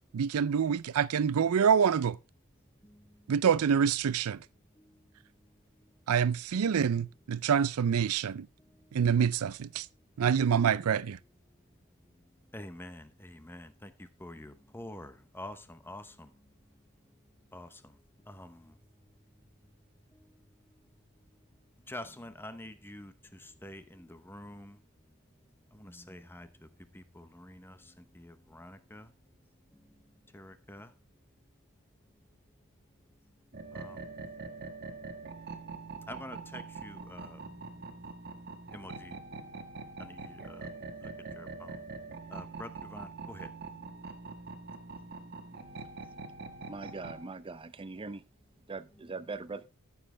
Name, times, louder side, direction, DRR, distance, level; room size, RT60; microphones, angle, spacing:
voice 1, 0.1-2.2 3.3-4.4 6.1-8.5 8.9-9.8 10.2-11.2, right 7 dB, 75° right, 0.4 m, -26 dB
voice 2, 12.5-13.9 14.2-16.3 17.5-17.8 18.3-18.7 21.9-24.8 25.7-26.5 26.9-29.1 30.3-30.9 33.7-34.0 36.1-37.4 38.7-39.4 40.0-40.6 41.0-41.8 42.3-43.5 48.9-49.1, left 1 dB, 10° left, 0.8 m, -47 dB
sound 1, 33.5-47.2, right 3 dB, 45° right, 1.5 m, -44 dB
voice 3, 46.7-48.2 48.7-49.7, right 3 dB, 25° right, 0.5 m, -41 dB
13.0 x 7.3 x 3.3 m
head